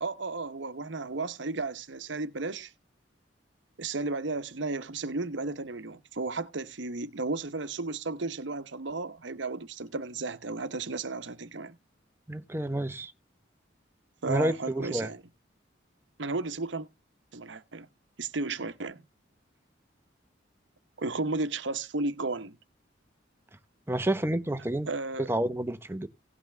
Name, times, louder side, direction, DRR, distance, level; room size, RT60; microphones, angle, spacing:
voice 1, 0.0-2.7 3.8-11.7 14.2-15.2 16.2-16.9 17.3-17.9 18.2-19.0 21.0-22.6 24.9-25.3, right 3 dB, 70° right, 0.9 m, -34 dB
voice 2, 12.3-13.1 14.3-15.1 23.9-24.9 25.3-26.1, right 1 dB, 15° right, 0.8 m, -29 dB
17.5 x 5.9 x 3.3 m
head